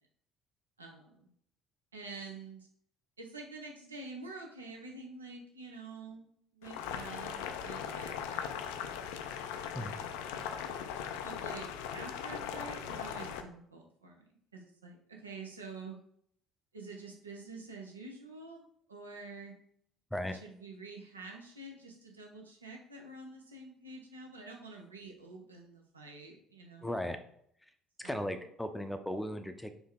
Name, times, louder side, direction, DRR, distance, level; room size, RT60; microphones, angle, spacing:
voice 1, 0.8-1.3 1.9-2.7 3.2-6.3 6.5-10.5 11.2-16.0 16.7-19.5 20.4-26.9 28.0-28.3, right 3 dB, 90° right, 1 dB, 0.7 m, -48 dB
Boiling, 6.6-13.4, left 8 dB, 70° left, 0.4 m, -39 dB
voice 2, 26.8-27.2 27.6-27.7 28.0-29.7, left 1 dB, 5° left, 8 dB, 0.6 m, -36 dB
4.4 x 2.8 x 3.6 m, 0.67 s
figure-of-eight pair, 55°, 0 cm